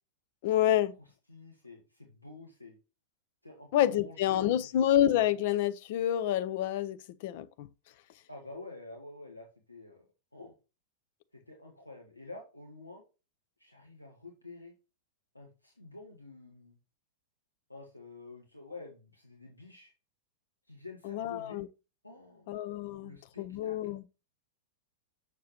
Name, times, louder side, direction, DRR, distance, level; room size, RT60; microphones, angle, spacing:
voice 1, 0.4-0.9 3.7-7.7 21.0-21.7 22.5-24.0, left 11 dB, 50° left, 0.5 m, -28 dB
voice 2, 1.3-2.8 3.4-4.9 8.3-10.1 10.3-10.5 11.3-13.0 13.6-14.7 15.3-16.8 17.7-19.9 20.7-21.6 22.0-22.5 23.0-23.8, left 3 dB, 85° left, 1.3 m, -49 dB
6.6 x 6.6 x 2.9 m
figure-of-eight pair, 95°, 0 cm